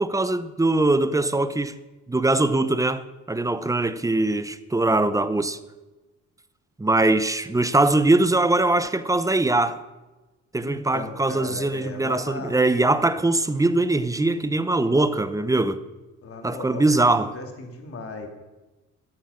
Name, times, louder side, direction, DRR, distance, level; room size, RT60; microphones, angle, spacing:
voice 1, 0.0-1.7 2.1-5.6 6.8-9.8 10.5-15.8 16.4-17.3, right 2 dB, 10° right, 0.7 m, -22 dB
voice 2, 10.6-12.6 16.2-18.3, left 3 dB, 50° left, 2.6 m, -37 dB
13.0 x 8.0 x 6.4 m
cardioid pair, 90°, 30 cm